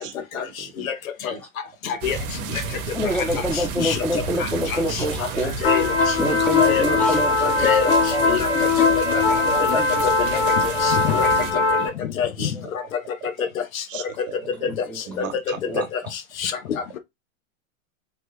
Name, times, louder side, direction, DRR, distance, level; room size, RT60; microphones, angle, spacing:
voice 1, 0.0-0.9 1.3-1.4 10.2-10.7 11.7-11.9 12.4-12.5 13.9-14.3 14.6-14.7 15.1-15.9, right 9 dB, 70° right, 1.0 m, -37 dB
voice 2, 1.8-2.2 3.8-4.0 4.4-5.0 5.6-6.1 6.6-6.8 7.4-7.9 8.3-8.5 9.0-9.2 9.7-9.8 10.6-11.3 12.2-12.5 13.7-13.8 15.2-15.3 16.4-17.0, left 8 dB, 80° left, 0.9 m, -25 dB
sound 1, 2.0-11.5, right 5 dB, 45° right, 0.7 m, -32 dB
voice 3, 2.9-5.7 6.2-12.0 12.4-12.6 14.3-15.1 15.6-15.9, equal, 5° left, 0.4 m, -28 dB
sound 2, 5.6-11.9, left 3 dB, 40° left, 1.2 m, -20 dB
3.2 x 2.2 x 3.1 m
hypercardioid pair, 135°, 41 cm